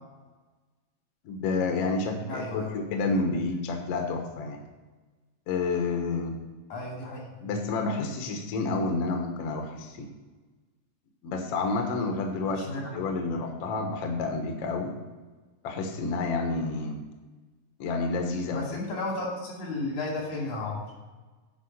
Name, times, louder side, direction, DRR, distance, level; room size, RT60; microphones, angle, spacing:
voice 1, 1.2-4.6 5.5-6.4 7.4-10.1 11.2-14.9 15.6-17.0 17.8-18.6, left 3 dB, 60° left, 3 dB, 1.8 m, -29 dB
voice 2, 2.3-2.7 3.1-3.2 6.7-7.3 12.6-13.0 18.5-20.8, left 2 dB, 85° left, -3 dB, 4.4 m, -33 dB
8.7 x 5.1 x 6.4 m, 1.3 s
omnidirectional pair, 3.8 m